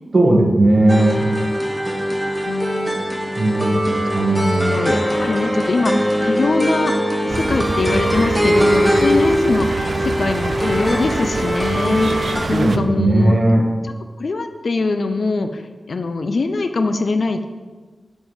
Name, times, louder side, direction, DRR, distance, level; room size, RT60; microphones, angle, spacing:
voice 1, 0.1-1.3 3.4-3.8 4.1-4.8 12.5-13.6, right 1 dB, 50° right, -1 dB, 1.6 m, -16 dB
sound 1, 0.9-12.4, equal, 10° right, 1.4 m, -21 dB
voice 2, 2.5-3.1 4.3-4.4 4.7-6.9 7.3-13.4 13.8-15.6 15.9-17.5, left 3 dB, 70° left, 8 dB, 0.5 m, -22 dB
sound 2, 4.5-6.7 7.5-12.4, left 1 dB, 50° left, 1.6 m, -36 dB
sound 3, 7.3-12.8, right 3 dB, 70° right, 0.4 m, -26 dB
7.2 x 5.0 x 5.6 m, 1.4 s
wide cardioid pair, 75°, 0 cm